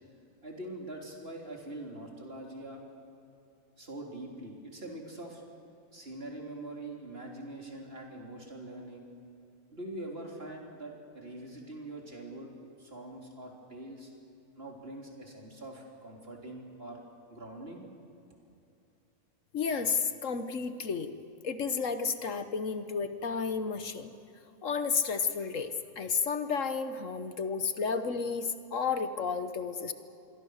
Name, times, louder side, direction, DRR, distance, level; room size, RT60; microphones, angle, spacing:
voice 1, 0.4-2.8 3.8-5.4 5.9-9.1 9.7-12.5 12.8-17.0 17.3-17.8, right 1 dB, 40° right, 0 dB, 4.0 m, -43 dB
voice 2, 19.5-21.1 21.4-24.1 24.6-29.9, left 5 dB, 60° left, 10 dB, 1.4 m, -32 dB
26.5 x 22.5 x 6.6 m, 2.7 s
omnidirectional pair, 1.6 m